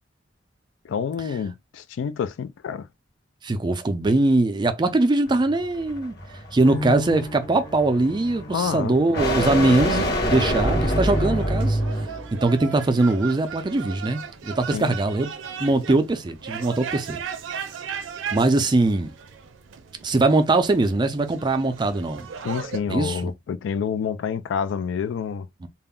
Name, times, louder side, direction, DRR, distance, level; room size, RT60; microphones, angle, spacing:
voice 1, 0.8-2.9 8.5-8.9 14.7-15.0 22.4-25.5, left 7 dB, 75° left, 0.3 m, -28 dB
voice 2, 3.4-6.2 6.5-11.8 12.3-15.3 15.6-17.2 18.3-19.1 20.0-22.3 22.9-23.3 25.6-25.7, right 2 dB, 25° right, 0.4 m, -21 dB
sound 1, 5.3-12.3, equal, 60° left, 0.9 m, -26 dB
sound 2, 6.6-21.9 22.2-23.0, left 2 dB, 20° left, 0.6 m, -43 dB
sound 3, 10.9-22.8, right 7 dB, 85° right, 0.4 m, -37 dB
2.3 x 2.0 x 3.5 m
head